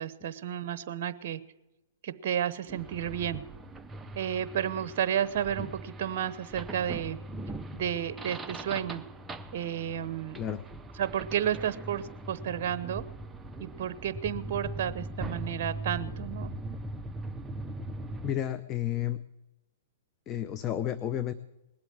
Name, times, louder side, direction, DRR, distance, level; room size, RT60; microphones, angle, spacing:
voice 1, 0.0-1.4 2.0-3.4 4.1-7.2 7.7-9.0 9.5-10.4 11.0-13.0 13.6-16.5, right 9 dB, 55° right, 14 dB, 0.8 m, -32 dB
sound 1, 2.7-18.3, right 1 dB, 10° right, 0.6 m, -40 dB
voice 2, 18.2-19.2 20.3-21.3, left 11 dB, 25° left, 12 dB, 0.6 m, -31 dB
20.0 x 8.0 x 8.6 m, 0.97 s
hypercardioid pair, 135°, 0 cm